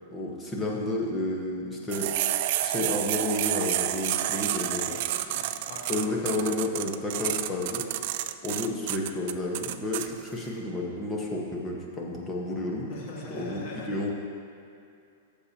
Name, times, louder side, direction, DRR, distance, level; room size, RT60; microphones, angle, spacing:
voice 1, 0.1-2.1 2.6-5.0 5.9-8.0 8.4-12.9 13.3-14.1, left 2 dB, 15° left, -2 dB, 1.2 m, -31 dB
sound 1, 1.9-10.1, right 13 dB, 50° right, 0.3 m, -29 dB
voice 2, 4.8-6.1 12.9-14.0, left 2 dB, 50° left, -4 dB, 1.9 m, -41 dB
13.5 x 6.9 x 2.9 m, 2.5 s
supercardioid pair, 155°, 0 cm